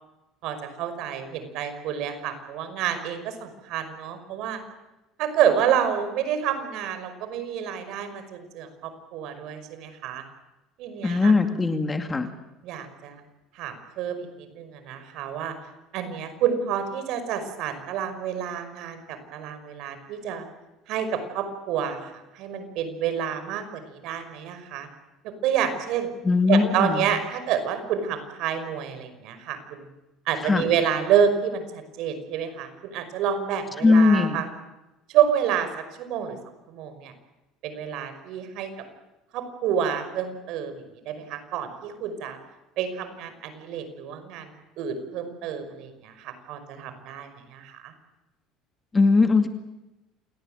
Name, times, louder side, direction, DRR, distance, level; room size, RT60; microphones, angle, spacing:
voice 1, 0.4-4.6 5.2-10.2 10.8-11.3 12.6-13.2 13.5-15.6 15.9-20.4 20.9-24.9 25.4-26.1 26.5-29.9 30.3-34.5 35.1-35.7 36.0-36.4 36.7-37.1 37.6-38.7 39.3-42.4 42.8-47.9, right 8 dB, 65° right, 9 dB, 5.5 m, -28 dB
voice 2, 11.0-12.3 26.2-27.1 30.4-30.7 33.8-34.4 48.9-49.5, left 3 dB, 20° left, 7 dB, 2.2 m, -20 dB
28.5 x 18.5 x 9.1 m, 1.0 s
cardioid pair, 125°, 0 cm